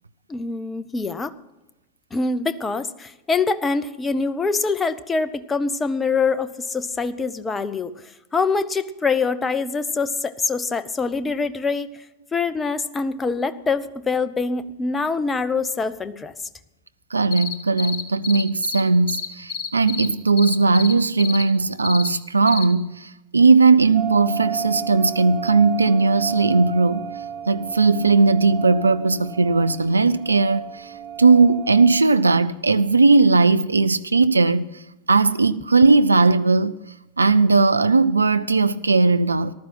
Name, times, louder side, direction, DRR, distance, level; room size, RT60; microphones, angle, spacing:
voice 1, 0.3-1.3 2.1-12.0 12.3-16.3, left 4 dB, 15° left, 0.8 m, -24 dB
voice 2, 17.1-27.1 27.5-30.9 31.2-34.7 35.1-36.7 37.2-39.5, right 3 dB, 80° right, 0.5 m, -18 dB
sound 1, 17.3-18.8 19.1-20.1 20.4-20.9 21.2-21.4 21.8-22.1 22.5-22.6, left 6 dB, 45° left, 1.6 m, -29 dB
sound 2, 23.9-32.0, right 8 dB, 40° right, 0.8 m, -33 dB
15.0 x 12.0 x 5.7 m
figure-of-eight pair, 90°, 0 cm